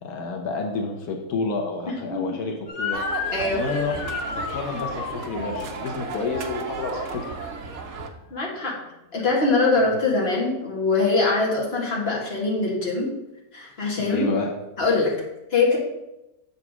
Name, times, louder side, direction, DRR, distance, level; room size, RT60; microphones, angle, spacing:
voice 1, 0.0-3.0 3.5-7.2 14.0-14.5, left 4 dB, 90° left, 2 dB, 1.4 m, -29 dB
voice 2, 1.9-2.4 3.3-3.6 8.3-8.8 9.1-13.1 13.5-14.3 14.8-15.2 15.5-15.8, left 3 dB, 45° left, -2 dB, 2.1 m, -23 dB
Motor vehicle (road) / Siren, 2.7-7.9, left 6 dB, 70° left, 1.3 m, -34 dB
sound 1, 2.9-8.1, right 4 dB, 65° right, 1.1 m, -34 dB
7.0 x 4.1 x 6.0 m, 0.93 s
omnidirectional pair, 1.6 m